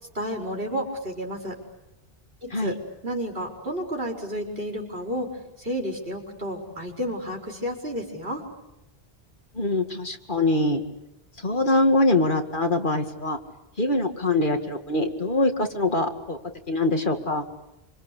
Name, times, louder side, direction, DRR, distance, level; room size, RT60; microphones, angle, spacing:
voice 1, 0.1-1.6 2.4-2.8 3.0-8.4, equal, 60° right, 1 dB, 5.0 m, -31 dB
voice 2, 9.5-10.8 11.4-13.4 13.8-16.4 16.7-17.5, left 2 dB, 50° left, 5 dB, 2.3 m, -23 dB
27.0 x 25.5 x 8.4 m, 0.91 s
omnidirectional pair, 1.1 m